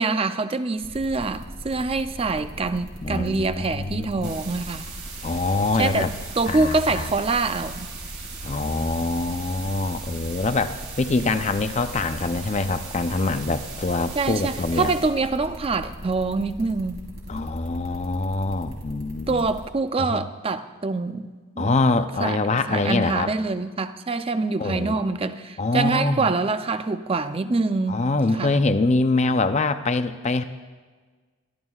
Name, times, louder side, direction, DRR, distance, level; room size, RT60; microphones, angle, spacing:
voice 1, 0.0-4.8 5.8-6.1 6.4-7.9 14.2-17.0 19.3-21.7 22.2-22.4 22.7-28.0 28.4-28.6, right 3 dB, 25° right, 0.4 m, -25 dB
sound 1, 0.8-19.6, equal, 75° right, 4.4 m, -39 dB
voice 2, 3.0-4.3 5.2-6.1 6.5-7.1 8.4-14.9 17.3-19.5 20.0-20.2 21.6-23.3 24.6-25.0 25.6-26.3 27.9-30.4, left 3 dB, 30° left, 0.5 m, -24 dB
sound 2, 4.2-15.2, right 5 dB, 50° right, 2.1 m, -39 dB
24.0 x 12.5 x 2.4 m
head